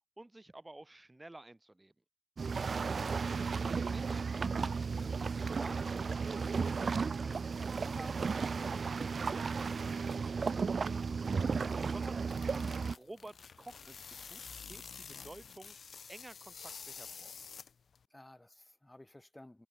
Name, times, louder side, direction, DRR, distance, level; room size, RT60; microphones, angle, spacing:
voice 1, 0.2-1.9 3.9-10.7 11.8-14.4 14.7-15.8 16.1-17.3, right 2 dB, 25° right, 2.2 m, -52 dB
sound 1, 2.4-12.9, right 5 dB, 65° right, 0.6 m, -34 dB
sound 2, 11.7-18.0, left 6 dB, 75° left, 0.5 m, -49 dB
voice 2, 18.1-19.7, left 1 dB, 20° left, 2.8 m, -57 dB
cardioid pair, 45°, 0 cm